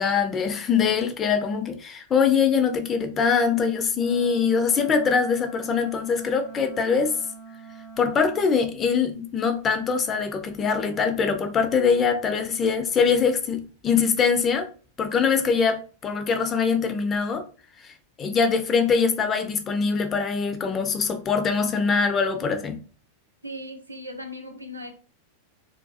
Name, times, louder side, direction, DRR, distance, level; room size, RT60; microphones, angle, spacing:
voice 1, 0.0-7.2 8.0-14.7 15.0-17.4 17.8-22.8, left 5 dB, 25° left, 0.4 m, -23 dB
Wind instrument woodwind instrument, 3.9-8.7, right 4 dB, 45° right, 0.7 m, -43 dB
voice 2, 23.4-24.9, left 1 dB, 85° right, 0.5 m, -37 dB
2.4 x 2.3 x 2.3 m
figure-of-eight pair, 90°, 0 cm